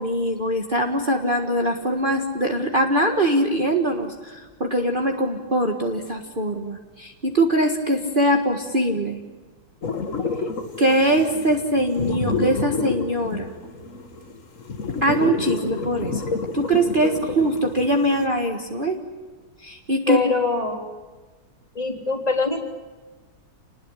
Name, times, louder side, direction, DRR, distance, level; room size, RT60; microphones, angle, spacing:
voice 1, 0.0-9.2 10.8-13.5 15.0-16.2 16.5-19.0 19.6-20.2, right 1 dB, 30° right, 2 dB, 1.7 m, -22 dB
sound 1, 9.8-18.3, left 4 dB, 45° left, 2.0 m, -29 dB
voice 2, 20.1-20.8 21.8-22.6, left 3 dB, 20° left, 0 dB, 3.6 m, -23 dB
28.5 x 20.0 x 10.0 m, 1.4 s
omnidirectional pair, 2.0 m